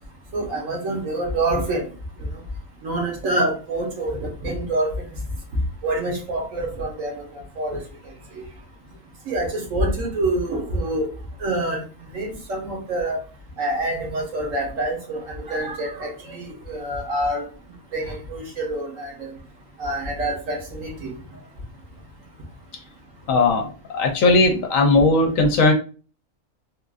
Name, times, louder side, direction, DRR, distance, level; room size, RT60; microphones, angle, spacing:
voice 1, 0.3-1.9 2.8-4.9 5.8-7.8 8.3-8.4 9.3-11.1 11.4-11.8 12.1-13.2 13.6-17.4 17.9-19.3 19.8-21.1, right 1 dB, 65° right, 0 dB, 1.3 m, -26 dB
voice 2, 23.3-25.7, left 3 dB, 70° left, 4 dB, 1.0 m, -18 dB
3.6 x 2.5 x 2.4 m, 0.37 s
omnidirectional pair, 1.5 m